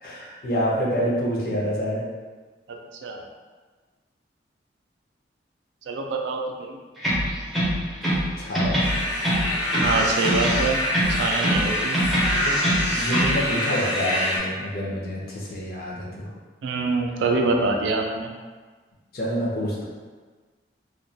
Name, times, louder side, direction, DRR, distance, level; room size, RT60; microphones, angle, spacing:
voice 1, 0.0-2.0 8.0-8.9 12.4-12.6 12.9-16.3 19.1-19.8, equal, 50° left, -5 dB, 0.5 m, -27 dB
voice 2, 5.9-6.8 9.8-10.8 11.1-12.0 16.6-18.3, right 3 dB, 80° right, 2 dB, 0.3 m, -25 dB
sound 1, 7.0-8.3 8.5-10.0 10.2-11.7 11.9-13.4, equal, ahead, 0.4 m, -24 dB
sound 2, 8.8-14.4, left 1 dB, 85° left, 0.8 m, -25 dB
2.2 x 2.2 x 2.6 m, 1.4 s
head